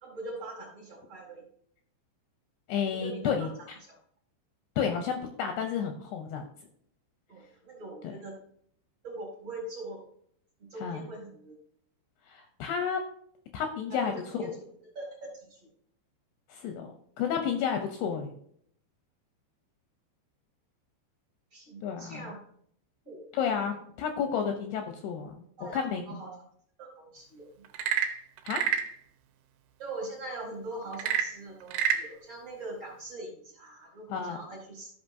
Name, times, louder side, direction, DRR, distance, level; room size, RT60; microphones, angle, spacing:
voice 1, 0.0-1.4 2.9-3.5 3.8-4.0 7.3-8.3 9.0-10.0 10.7-11.5 13.9-14.5 14.9-15.1 15.3-15.6 21.5-22.4 23.0-23.7 25.6-25.8 26.1-26.3 26.8-27.5 29.8-34.9, right 2 dB, 40° right, -3 dB, 2.9 m, -42 dB
voice 2, 2.7-3.5 4.8-6.4 10.8-11.0 12.3-13.1 13.5-14.1 16.5-18.3 21.8-22.2 23.3-25.5 25.7-26.2 28.4-28.7 34.1-34.4, left 7 dB, 80° left, 4 dB, 2.5 m, -31 dB
Frog / Percussion / Wood, 27.7-29.0 30.9-32.1, right 8 dB, 80° right, 3.1 m, -28 dB
14.5 x 5.8 x 2.6 m, 0.65 s
omnidirectional pair, 5.3 m